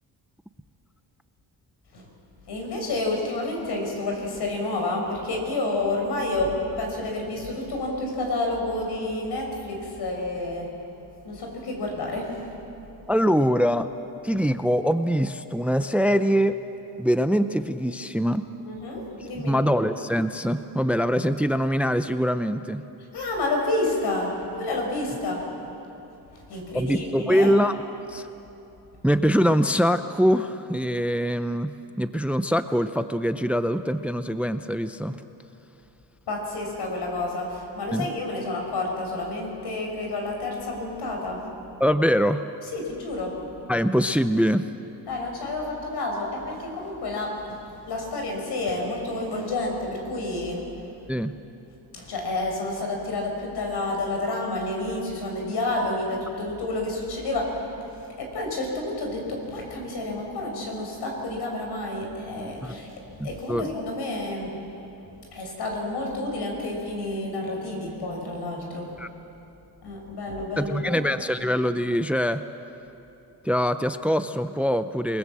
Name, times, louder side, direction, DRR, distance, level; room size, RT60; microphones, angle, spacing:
voice 1, 2.5-10.8 11.2-12.4 18.6-19.9 23.1-25.5 26.5-27.5 36.3-41.5 42.7-43.4 45.1-47.4 47.9-50.7 51.9-57.7 58.2-64.5 65.3-69.0 69.8-71.0, left 2 dB, 75° left, 1 dB, 6.2 m, -29 dB
voice 2, 13.1-13.9 14.2-16.6 17.0-18.5 19.3-22.8 26.7-27.8 28.1-28.3 29.0-35.2 37.9-38.1 41.8-42.4 43.7-44.7 51.1-51.4 62.6-62.7 63.2-63.7 69.0-69.1 70.6-72.4 73.4-75.2, equal, 5° right, 11 dB, 0.6 m, -23 dB
28.0 x 20.5 x 7.6 m, 2.9 s
cardioid pair, 120°, 40 cm